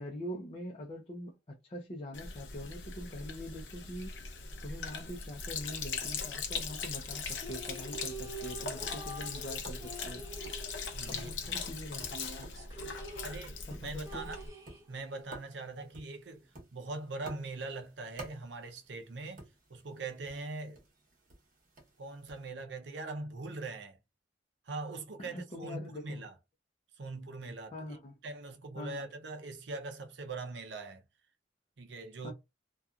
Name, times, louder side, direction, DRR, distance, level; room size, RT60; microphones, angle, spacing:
voice 1, 0.0-4.1 4.6-10.2 11.1-12.6 13.7-14.3 25.2-26.2 27.7-28.2 28.7-29.1 32.2-32.3, left 1 dB, 30° left, 0.5 m, -43 dB
Sink (filling or washing), 2.1-14.5, left 5 dB, 85° left, 0.7 m, -40 dB
Tap, 5.7-22.5, right 2 dB, 50° right, 0.9 m, -54 dB
sound 1, 7.2-11.9 12.1-12.2 12.5-15.2, right 2 dB, 20° right, 0.8 m, -46 dB
voice 2, 10.9-11.3 13.2-14.4 14.9-19.4 19.7-20.8 22.0-24.0 24.7-26.3 27.0-28.0 28.2-31.0 31.8-32.3, right 3 dB, 70° right, 0.6 m, -42 dB
2.8 x 2.3 x 2.3 m
head